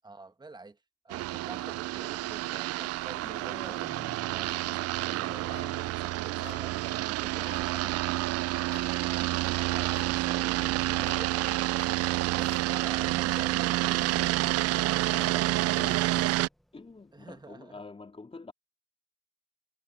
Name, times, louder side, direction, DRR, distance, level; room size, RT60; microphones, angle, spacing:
voice 1, 0.0-0.8 1.0-7.9 9.0-11.7 12.3-13.7 17.1-17.8, right 3 dB, 15° right, 1.6 m, -48 dB
sound 1, 1.1-16.5, right 17 dB, 55° right, 0.5 m, -29 dB
Human voice, 2.3-17.5, equal, ahead, 1.3 m, -51 dB
sound 2, 4.4-4.8 5.0-5.2 5.5-5.9 6.4-6.8 7.4-7.8 8.3-8.4 8.7-9.2 9.9-10.2 10.6-13.6, left 9 dB, 50° left, 3.3 m, -50 dB
voice 2, 10.9-11.3 14.0-14.4 14.7-18.5, left 3 dB, 20° left, 4.0 m, -47 dB
supercardioid pair, 85°, 29 cm